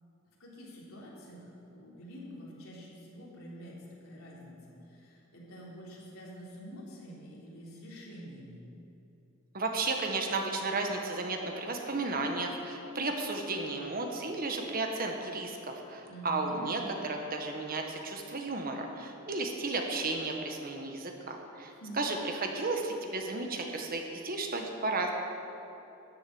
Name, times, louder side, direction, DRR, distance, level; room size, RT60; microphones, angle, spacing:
voice 1, 0.4-3.8 4.0-8.7 16.0-17.0 21.8-22.0, equal, 90° left, -5 dB, 3.6 m, -47 dB
voice 2, 9.5-25.1, right 3 dB, 45° right, 3 dB, 1.4 m, -33 dB
13.5 x 7.5 x 9.4 m, 3.0 s
head